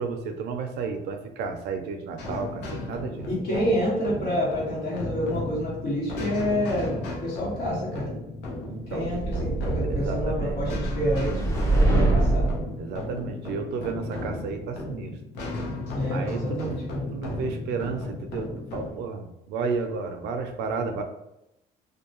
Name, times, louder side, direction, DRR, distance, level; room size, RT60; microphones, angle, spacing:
voice 1, 0.0-3.3 8.7-9.2 9.9-10.6 12.8-15.2 16.1-16.8 17.1-21.0, right 5 dB, 80° right, 6 dB, 0.4 m, -32 dB
sound 1, 2.2-18.9, left 2 dB, 80° left, 0.8 m, -35 dB
voice 2, 3.3-7.0 7.2-8.1 8.9-12.5 15.9-16.8, equal, 65° left, -6 dB, 1.5 m, -28 dB
sound 2, 9.0-12.7, right 2 dB, 15° left, 0.7 m, -24 dB
2.6 x 2.2 x 2.8 m, 0.88 s
cardioid pair, 110°, 17 cm